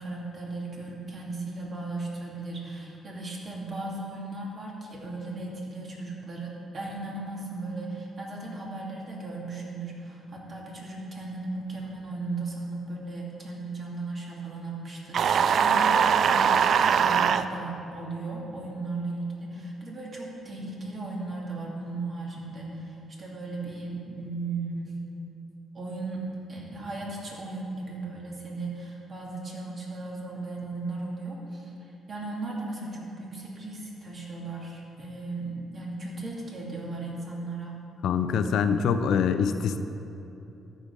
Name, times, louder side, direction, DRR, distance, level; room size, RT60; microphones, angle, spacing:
voice 1, 0.0-25.0 25.7-26.2 26.5-37.7, right 2 dB, 40° right, -3 dB, 2.4 m, -36 dB
sound 1, 15.1-17.4, right 7 dB, 60° right, 0.3 m, -21 dB
voice 2, 38.0-39.8, left 6 dB, 75° left, 10 dB, 0.4 m, -24 dB
13.5 x 5.1 x 5.2 m, 2.8 s
cardioid pair, 90°, 0 cm